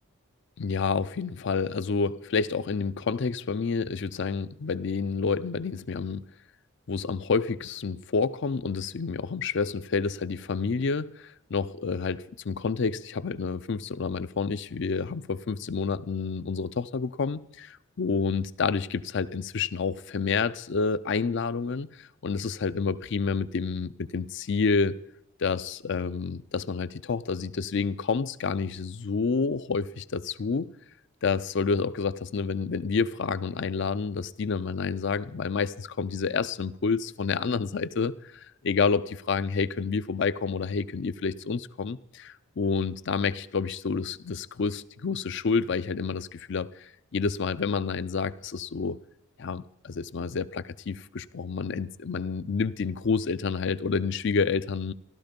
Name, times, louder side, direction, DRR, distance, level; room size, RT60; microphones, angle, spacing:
voice 1, 0.6-6.2 6.9-25.0 25.4-30.7 31.2-49.0 49.4-54.9, left 5 dB, 55° left, 0.5 m, -29 dB
14.5 x 12.5 x 5.2 m
head